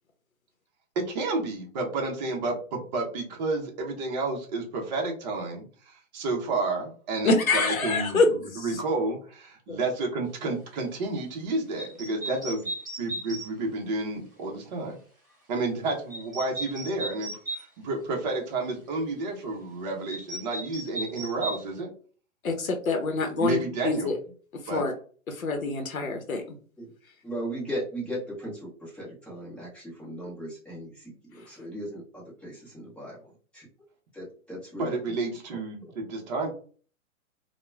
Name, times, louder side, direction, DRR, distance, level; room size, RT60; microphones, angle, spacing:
voice 1, 1.0-5.7 6.1-12.7 13.0-15.0 15.5-21.9 23.4-24.1 24.7-24.8 34.8-36.5, right 3 dB, 30° right, 1 dB, 0.7 m, -30 dB
voice 2, 7.2-8.3 8.5-8.8 9.7-9.8 22.4-24.2 24.6-24.9 25.3-26.6, left 3 dB, 75° left, 4 dB, 0.7 m, -26 dB
sound 1, 11.8-13.5 16.1-17.6 20.1-21.6, right 1 dB, 15° right, 0.3 m, -36 dB
voice 3, 27.2-33.2 33.5-33.7 34.1-35.2 35.5-35.6, equal, ahead, -7 dB, 0.7 m, -37 dB
3.0 x 2.1 x 2.2 m, 0.42 s
figure-of-eight pair, 125°, 42 cm